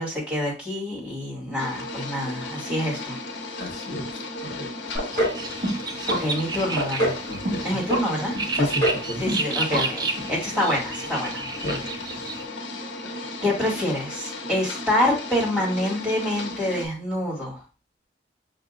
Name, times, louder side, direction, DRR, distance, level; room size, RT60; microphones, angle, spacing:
voice 1, 0.0-3.2 6.1-7.2 7.6-8.4 9.2-11.4 13.4-17.6, left 1 dB, 5° right, -7 dB, 2.4 m, -26 dB
sound 1, 1.6-16.9, left 2 dB, 85° left, 0.7 m, -35 dB
voice 2, 3.6-4.1 4.4-5.0 7.3-7.8 8.6-9.2 11.6-11.8, left 1 dB, 65° left, 1 dB, 1.2 m, -31 dB
sound 2, 5.0-5.4 5.6-6.2 6.5-7.2 7.5-8.0 8.4-9.0 9.3-9.5 9.7-9.8 10.2-10.3, equal, 50° right, 2.1 m, -24 dB
sound 3, 5.1-12.4, right 3 dB, 20° right, 0.3 m, -32 dB
5.5 x 2.6 x 2.5 m, 0.30 s
head